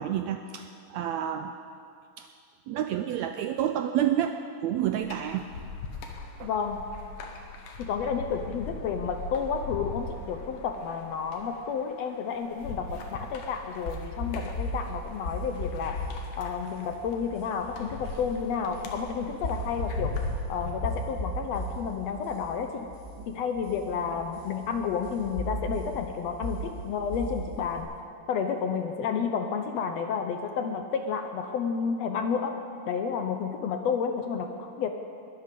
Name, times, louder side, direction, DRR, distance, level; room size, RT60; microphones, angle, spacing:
voice 1, 0.0-1.5 2.2-2.3 2.7-4.4 4.6-5.4 6.4-6.5, right 10 dB, 85° right, 7 dB, 1.6 m, -29 dB
sound 1, 5.0-20.7, left 3 dB, 85° left, 3.0 m, -40 dB
voice 2, 6.4-6.8 7.8-16.1 16.4-20.2 20.5-22.9 23.3-27.9 28.3-32.6 32.9-34.9, left 6 dB, 70° left, 6 dB, 1.7 m, -31 dB
sound 2, 13.9-27.8, equal, 30° left, 3.6 m, -37 dB
21.0 x 12.5 x 5.3 m, 2.4 s
omnidirectional pair, 3.6 m